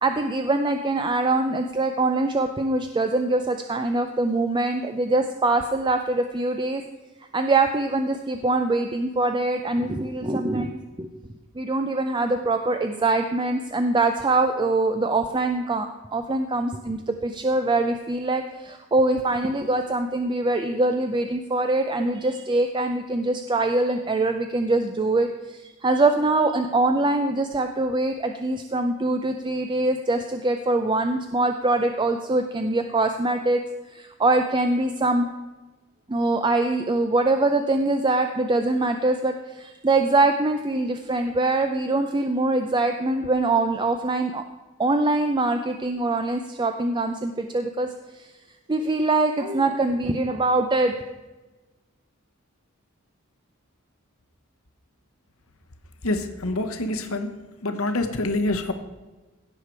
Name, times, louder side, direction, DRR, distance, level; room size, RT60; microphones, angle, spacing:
voice 1, 0.0-6.8 7.3-11.1 11.6-33.6 33.9-35.3 36.1-44.4 44.8-47.9 48.1-48.3 48.7-50.9, right 2 dB, 20° right, 6 dB, 0.5 m, -23 dB
voice 2, 56.0-57.3 57.6-58.7, left 2 dB, 70° left, 6 dB, 1.1 m, -26 dB
16.5 x 6.7 x 4.6 m, 1.2 s
head